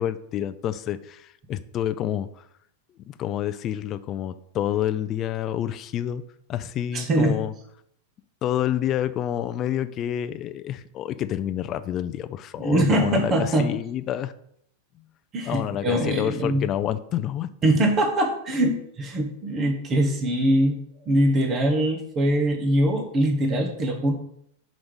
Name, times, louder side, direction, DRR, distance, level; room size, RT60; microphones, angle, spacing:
voice 1, 0.0-2.3 3.1-6.2 6.5-7.5 8.4-14.3 15.4-17.7, left 11 dB, 20° left, 11 dB, 0.4 m, -28 dB
voice 2, 6.9-7.4 12.6-13.7 15.3-16.7 17.6-20.8 21.1-24.1, right 1 dB, 20° right, 2 dB, 0.9 m, -22 dB
5.5 x 5.0 x 6.2 m, 0.71 s
supercardioid pair, 180°, 0 cm